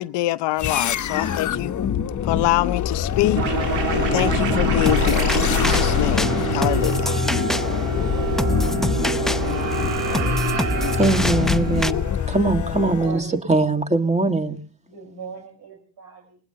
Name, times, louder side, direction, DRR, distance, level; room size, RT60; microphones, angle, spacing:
voice 1, 0.0-1.7 2.2-3.6 3.9-7.2, left 16 dB, 70° left, 0.7 m, -25 dB
sound 1, 0.6-13.2, left 9 dB, 40° left, 1.0 m, -24 dB
sound 2, 3.3-12.3, right 8 dB, 85° right, 2.0 m, -27 dB
sound 3, 4.9-11.9, equal, ahead, 0.6 m, -27 dB
voice 2, 11.0-12.0 12.3-14.6, right 3 dB, 15° right, 1.8 m, -21 dB
voice 3, 12.8-13.4 14.9-16.4, right 5 dB, 60° right, 4.8 m, -38 dB
20.5 x 19.5 x 2.8 m
supercardioid pair, 85°, 43 cm